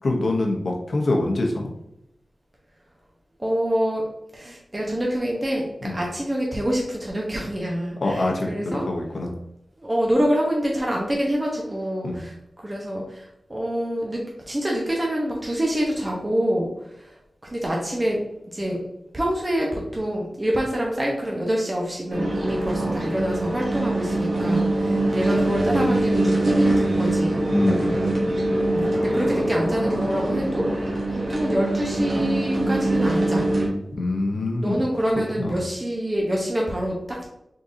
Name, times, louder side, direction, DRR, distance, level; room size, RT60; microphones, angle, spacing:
voice 1, 0.0-1.7 5.8-6.0 8.0-9.4 12.0-12.2 27.5-28.0 34.0-34.8 35.4-35.6, left 2 dB, 70° left, 0 dB, 0.7 m, -25 dB
voice 2, 3.4-4.0 4.3-8.9 9.8-16.7 16.9-17.2 17.5-18.2 18.5-18.8 19.1-27.4 28.6-30.7 31.1-33.5 34.6-37.3, equal, 25° right, -2 dB, 0.8 m, -26 dB
sound 1, 22.1-33.7, right 1 dB, 80° right, 1.1 m, -23 dB
3.8 x 3.7 x 2.6 m, 0.83 s
cardioid pair, 55°, 0 cm